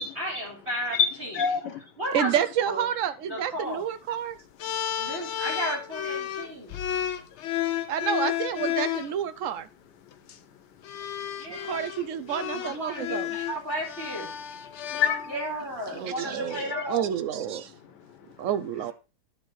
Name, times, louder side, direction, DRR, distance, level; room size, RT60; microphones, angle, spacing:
voice 1, 0.2-1.4 2.0-2.8 3.3-3.8 5.0-6.8 11.4-11.8 12.3-14.3 15.3-17.1, equal, 40° right, 3.5 m, -34 dB
voice 2, 1.3-1.8 6.4-6.5 7.3-7.4 14.6-15.3 16.5-16.8 18.0-18.4, left 7 dB, 90° left, 1.6 m, -28 dB
voice 3, 2.1-4.4 7.9-9.7 11.5-13.3 15.9-17.7 18.4-18.9, right 9 dB, 65° right, 0.8 m, -29 dB
sound 1, 4.6-9.1 10.1-10.3 10.8-15.7, left 10 dB, 65° left, 0.7 m, -32 dB
10.5 x 4.4 x 4.6 m
omnidirectional pair, 1.8 m